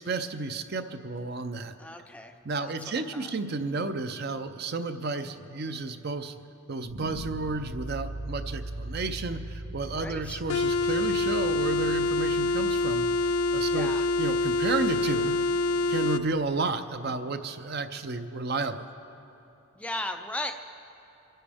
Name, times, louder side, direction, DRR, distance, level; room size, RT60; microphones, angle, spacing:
voice 1, 0.0-1.7 2.4-6.3 6.7-13.9 14.2-15.4 15.9-18.9, right 3 dB, 45° right, 9 dB, 0.6 m, -32 dB
voice 2, 1.8-2.7 3.1-3.3 10.0-10.4 13.7-14.1 19.8-20.5, left 1 dB, 5° left, 5 dB, 0.4 m, -36 dB
sound 1, 6.9-15.9, right 1 dB, 90° right, 2.0 m, -41 dB
sound 2, 10.5-16.3, left 2 dB, 80° left, 0.4 m, -26 dB
28.5 x 10.0 x 3.5 m, 3.0 s
head